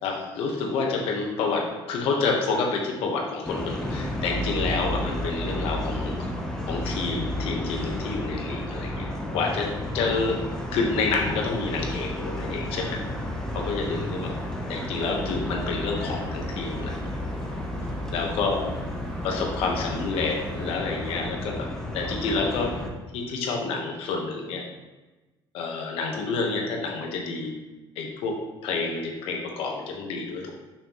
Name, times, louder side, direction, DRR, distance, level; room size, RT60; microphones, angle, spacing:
voice 1, 0.0-6.3 6.7-9.1 9.3-10.4 10.7-13.0 13.5-14.3 14.7-17.0 18.1-18.7 19.2-21.7 21.9-22.8 23.1-24.6 25.5-27.5 28.0-30.5, left 4 dB, 90° left, 1 dB, 1.2 m, -28 dB
sound 1, 3.4-22.9, left 1 dB, 5° left, 0.7 m, -32 dB
sound 2, 12.2-20.7, right 1 dB, 60° right, 0.9 m, -44 dB
5.8 x 5.4 x 3.0 m, 1.1 s
cardioid pair, 150°, 9 cm